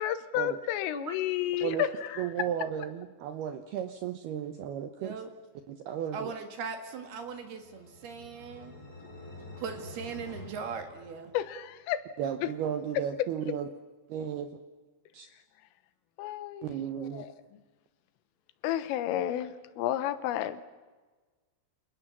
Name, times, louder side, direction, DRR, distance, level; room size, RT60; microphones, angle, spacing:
voice 1, 0.0-2.3 11.3-12.0 12.4-12.5 16.2-16.7 17.0-17.3 18.6-20.6, left 12 dB, 80° left, 13 dB, 3.7 m, -31 dB
voice 2, 2.2-5.2 5.7-6.3 12.2-13.7 14.1-14.5 15.1-15.3 16.6-17.2, right 9 dB, 75° right, 8 dB, 2.4 m, -34 dB
voice 3, 5.0-5.3 6.1-8.7 9.6-11.3, right 6 dB, 60° right, 7 dB, 3.6 m, -39 dB
sound 1, 7.1-11.7, left 2 dB, 20° left, 3.5 m, -48 dB
29.0 x 28.0 x 7.4 m, 1.3 s
omnidirectional pair, 5.8 m